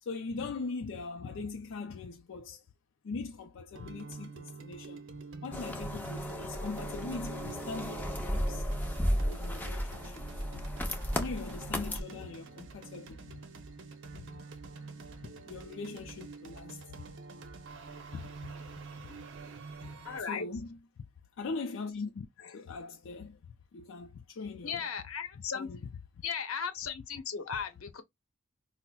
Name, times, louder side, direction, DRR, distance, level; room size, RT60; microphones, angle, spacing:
voice 1, 0.0-2.6 3.0-5.0 5.4-8.7 9.1-10.2 10.5-10.6 11.2-13.3 14.1-14.3 15.2-17.0 18.1-18.5 19.0-19.2 19.8-19.9 20.2-20.8 21.4-23.4 23.7-24.9 25.4-25.8 27.4-27.6, left 4 dB, 65° left, 0.4 m, -41 dB
sound 1, 3.7-20.2, right 4 dB, 60° right, 0.7 m, -46 dB
sound 2, 5.5-12.0, equal, 10° left, 0.7 m, -34 dB
voice 2, 20.0-20.5 24.6-25.7 26.2-28.0, left 6 dB, 85° left, 0.8 m, -36 dB
5.5 x 2.0 x 2.3 m
head